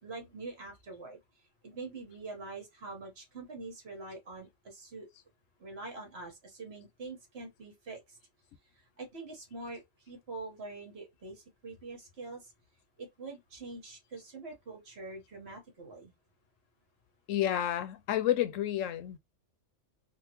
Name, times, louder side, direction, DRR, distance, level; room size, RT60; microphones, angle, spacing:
voice 1, 0.0-1.2 1.6-5.1 5.6-8.2 8.7-12.5 13.0-16.1, right 3 dB, 55° right, 1.4 m, -45 dB
voice 2, 17.3-19.2, left 12 dB, 80° left, 0.9 m, -30 dB
3.7 x 2.4 x 2.9 m
omnidirectional pair, 1.3 m